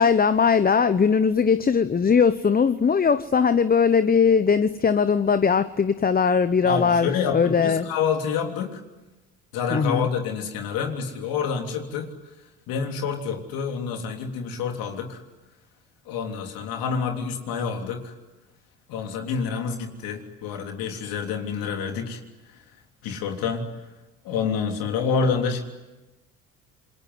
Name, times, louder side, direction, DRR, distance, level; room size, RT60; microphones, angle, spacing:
voice 1, 0.0-7.9 9.7-10.1, left 6 dB, 25° left, 12 dB, 1.0 m, -20 dB
voice 2, 6.6-8.8 9.5-12.1 12.7-15.2 16.1-18.1 18.9-22.2 23.0-23.6 24.2-25.6, left 6 dB, 70° left, 3 dB, 3.4 m, -28 dB
27.5 x 22.0 x 9.6 m, 1.1 s
supercardioid pair, 70°, 36 cm